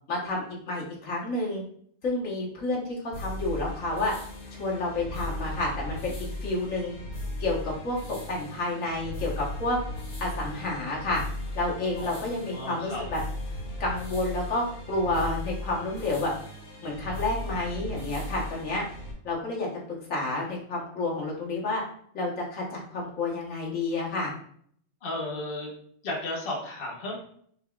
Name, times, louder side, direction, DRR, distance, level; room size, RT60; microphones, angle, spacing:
voice 1, 0.1-1.6 2.0-4.1 4.6-6.9 7.4-9.8 10.2-11.2 11.5-13.2 13.8-16.3 16.8-18.8 19.2-21.8 22.1-24.3, left 2 dB, 70° left, -3 dB, 1.6 m, -30 dB
sound 1, 3.1-19.1, left 1 dB, 90° left, 1.6 m, -37 dB
voice 2, 12.5-13.0 25.0-25.7 26.0-27.2, left 2 dB, 45° left, -2 dB, 1.2 m, -34 dB
5.6 x 3.4 x 2.3 m, 0.62 s
omnidirectional pair, 1.5 m